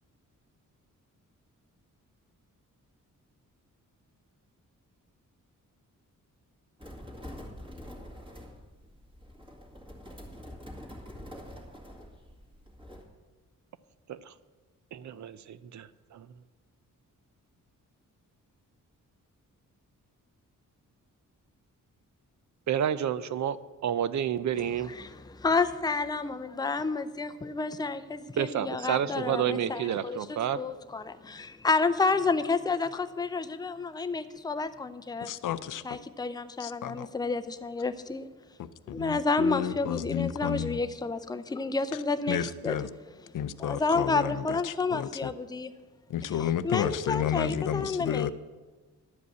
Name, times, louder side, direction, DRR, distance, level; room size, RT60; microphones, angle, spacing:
sound 1, 6.8-13.0, equal, 15° right, 2.0 m, -45 dB
voice 1, 14.9-16.3 22.7-23.6 23.8-24.9 28.4-30.6, right 9 dB, 60° right, 15 dB, 0.6 m, -30 dB
voice 2, 24.6-30.3 30.6-35.3 35.8-38.3 38.9-42.8 43.6-45.7 46.4-48.3, left 4 dB, 10° left, 10 dB, 0.5 m, -30 dB
voice 3, 35.2-35.8 36.6-37.1 38.6-40.8 42.3-42.9 43.3-45.3 46.1-48.3, left 9 dB, 70° left, 15 dB, 0.5 m, -31 dB
11.5 x 5.2 x 8.1 m, 1.3 s
wide cardioid pair, 120°, 32 cm